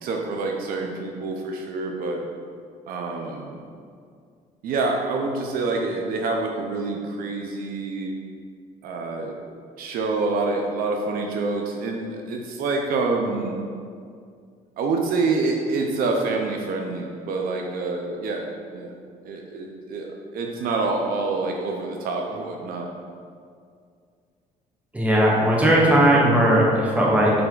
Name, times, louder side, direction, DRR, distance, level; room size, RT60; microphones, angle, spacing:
voice 1, 0.0-2.2 2.9-3.6 4.6-8.1 8.8-9.3 9.8-13.6 14.8-18.5 18.7-18.9 19.2-20.1 20.3-22.9, right 3 dB, 70° right, 1 dB, 0.6 m, -27 dB
voice 2, 24.9-27.3, right 1 dB, 10° right, -5 dB, 1.4 m, -18 dB
7.6 x 3.4 x 3.8 m, 2.2 s
cardioid pair, 110°, 15 cm